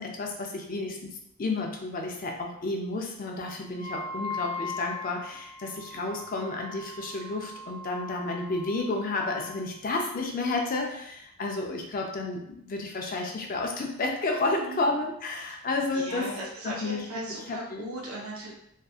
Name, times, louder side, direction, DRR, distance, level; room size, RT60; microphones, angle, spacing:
voice 1, 0.0-16.3 16.6-17.1 17.5-17.9, left 2 dB, 40° left, 1 dB, 0.4 m, -31 dB
Wind instrument woodwind instrument, 3.7-9.6, left 3 dB, 5° right, 0.6 m, -39 dB
voice 2, 14.6-15.0 15.9-18.5, right 1 dB, 80° right, -2 dB, 0.5 m, -38 dB
2.6 x 2.3 x 2.3 m, 0.76 s
head